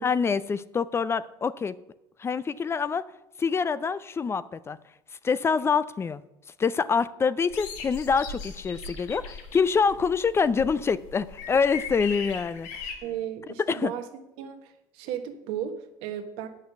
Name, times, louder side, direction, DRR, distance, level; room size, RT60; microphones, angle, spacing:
voice 1, 0.0-1.8 2.2-3.1 3.4-4.8 5.2-6.2 6.6-12.9 13.7-13.9, left 5 dB, 25° left, 0.4 m, -26 dB
sound 1, 7.5-12.9, left 5 dB, 85° left, 1.5 m, -39 dB
voice 2, 13.0-14.0 14.4-16.5, right 10 dB, 80° right, 1.2 m, -35 dB
8.4 x 6.5 x 6.9 m
supercardioid pair, 95°, 10 cm